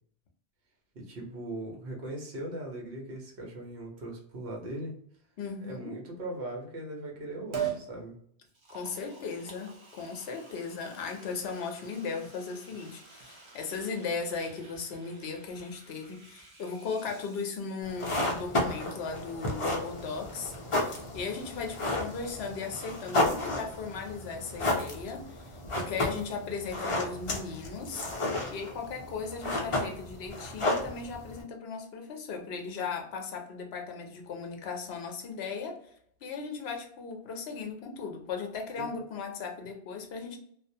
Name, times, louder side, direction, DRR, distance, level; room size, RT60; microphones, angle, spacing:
voice 1, 0.9-4.9 5.6-8.2 28.4-28.5 38.8-38.9, right 1 dB, 65° right, -1 dB, 1.0 m, -39 dB
voice 2, 5.4-6.0 8.7-20.5 20.8-28.0 28.5-35.8 36.2-40.4, left 5 dB, 70° left, 3 dB, 0.8 m, -37 dB
Liquid, 7.5-7.9 8.5-18.1 18.4-18.5, right 8 dB, 40° right, 0.5 m, -43 dB
sound 1, 17.8-31.4, left 2 dB, 40° left, 0.5 m, -32 dB
2.5 x 2.0 x 2.7 m, 0.65 s
omnidirectional pair, 1.1 m